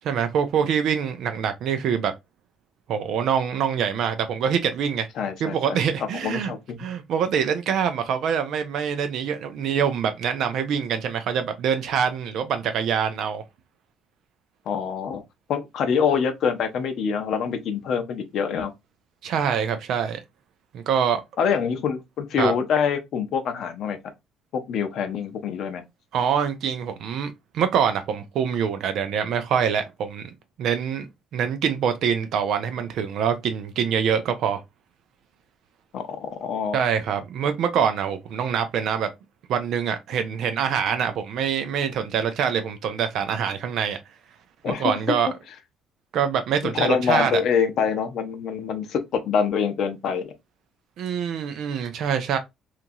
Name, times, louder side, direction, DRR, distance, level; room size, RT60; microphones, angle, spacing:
voice 1, 0.0-2.1 2.9-5.1 5.4-6.5 6.8-13.4 19.2-20.2 20.7-21.2 22.4-22.5 26.1-30.3 30.6-31.1 31.3-34.6 36.7-39.1 39.5-44.0 44.7-45.3 46.1-47.4 51.0-52.4, right 7 dB, 55° right, 0.4 m, -25 dB
voice 2, 5.2-5.8 6.2-6.8 14.7-15.2 15.5-18.7 21.4-24.0 24.7-25.8 35.9-36.8 44.6-44.9 46.7-50.3, left 6 dB, 50° left, 0.6 m, -25 dB
3.0 x 2.4 x 2.6 m
cardioid pair, 175°, 0 cm